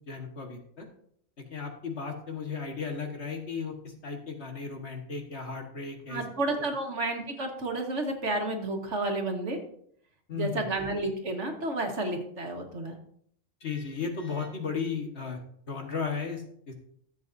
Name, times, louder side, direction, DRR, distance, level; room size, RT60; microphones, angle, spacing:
voice 1, 0.1-0.9 1.4-6.2 10.3-10.7 13.6-15.4 15.7-16.7, left 5 dB, 55° left, 3 dB, 1.8 m, -35 dB
voice 2, 6.1-9.6 10.3-13.0, right 2 dB, 60° right, 3 dB, 1.7 m, -31 dB
14.0 x 8.0 x 2.7 m, 0.66 s
omnidirectional pair, 1.4 m